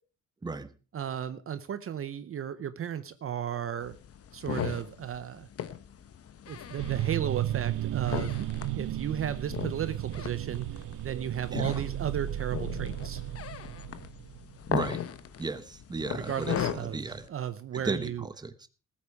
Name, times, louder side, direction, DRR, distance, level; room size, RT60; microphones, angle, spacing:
voice 1, 0.9-4.0 4.3-5.5 6.5-8.3 8.8-10.7 11.0-13.2 16.1-18.3, right 9 dB, 45° right, 14 dB, 0.7 m, -34 dB
sound 1, 3.8-17.3, left 9 dB, 50° left, 1.0 m, -38 dB
sound 2, 6.8-14.9, right 13 dB, 90° right, 0.7 m, -34 dB
voice 2, 14.7-15.0 15.4-16.5 16.8-17.3 17.7-18.7, right 3 dB, 15° right, 11 dB, 1.0 m, -34 dB
19.0 x 8.8 x 4.8 m, 0.36 s
wide cardioid pair, 175°, 31 cm